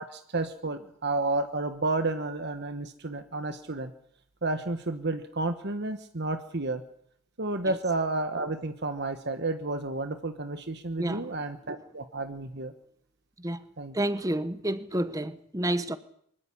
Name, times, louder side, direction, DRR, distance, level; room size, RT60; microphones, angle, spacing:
voice 1, 0.0-3.9 4.4-6.8 7.4-12.7 13.8-14.0, right 2 dB, 50° right, 1.3 m, -31 dB
voice 2, 11.0-11.4 13.4-13.6 13.9-16.0, right 1 dB, 15° right, 1.2 m, -30 dB
24.0 x 14.5 x 10.0 m
head